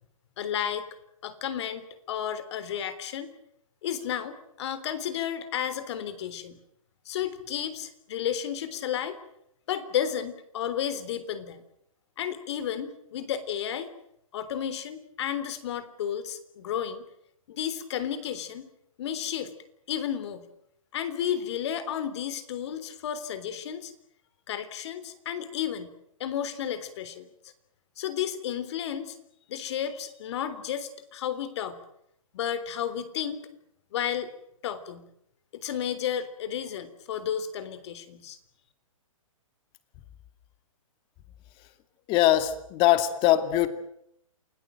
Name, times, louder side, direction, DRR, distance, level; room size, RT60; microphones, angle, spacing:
voice 1, 0.4-0.9 1.2-3.3 3.8-6.6 7.1-9.2 9.7-11.6 12.2-13.9 14.3-17.1 17.5-18.7 19.0-19.5 19.9-20.5 20.9-23.9 24.5-25.9 26.2-27.3 28.0-29.2 29.5-31.8 32.3-33.5 33.9-34.3 34.6-35.1 35.5-38.4, left 9 dB, 55° left, 13 dB, 3.5 m, -32 dB
voice 2, 42.1-43.7, left 13 dB, 30° left, 10 dB, 2.5 m, -22 dB
28.5 x 18.0 x 8.9 m, 0.75 s
hypercardioid pair, 145°, 17 cm